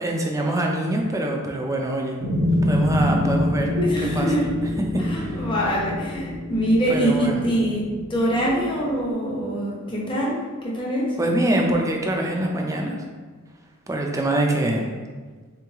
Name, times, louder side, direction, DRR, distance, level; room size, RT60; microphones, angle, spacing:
voice 1, 0.0-2.2 2.7-3.7 4.1-4.3 4.9-5.4 6.9-7.5 11.2-13.0 13.9-14.9, right 1 dB, 15° right, 0 dB, 0.4 m, -24 dB
sound 1, 2.2-8.8, left 1 dB, 70° right, 0.7 m, -25 dB
voice 2, 3.8-4.5 5.0-7.8 8.1-11.2, equal, 25° left, -4 dB, 0.8 m, -24 dB
3.8 x 3.0 x 3.5 m, 1.4 s
head